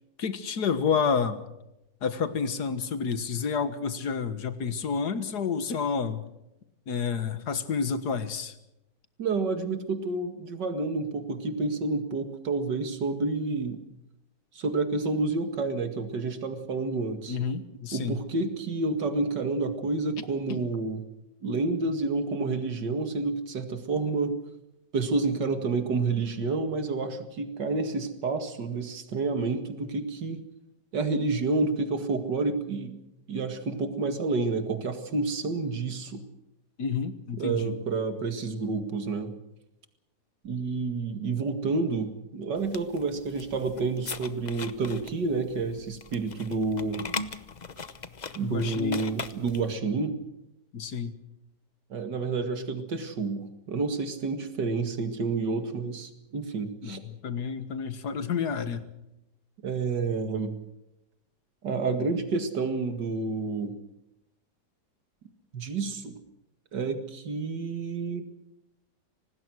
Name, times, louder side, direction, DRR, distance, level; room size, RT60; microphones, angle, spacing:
voice 1, 0.2-1.4 2.0-6.2 6.9-8.5 17.3-18.2 20.5-20.7 36.8-37.8 48.4-49.1 50.7-51.2 56.8-58.9, left 6 dB, 65° left, 11 dB, 2.0 m, -29 dB
voice 2, 9.2-13.8 14.5-17.4 17.9-21.0 21.4-24.4 24.9-30.4 30.9-33.0 33.3-36.2 37.4-39.3 40.4-47.0 48.4-50.2 51.9-57.0 59.6-60.5 61.6-63.7 65.5-66.2 66.7-68.3, right 3 dB, 70° right, 8 dB, 2.7 m, -29 dB
sound 1, 42.6-49.7, left 4 dB, 35° left, 0.7 m, -40 dB
25.5 x 19.0 x 6.3 m, 0.89 s
omnidirectional pair, 1.9 m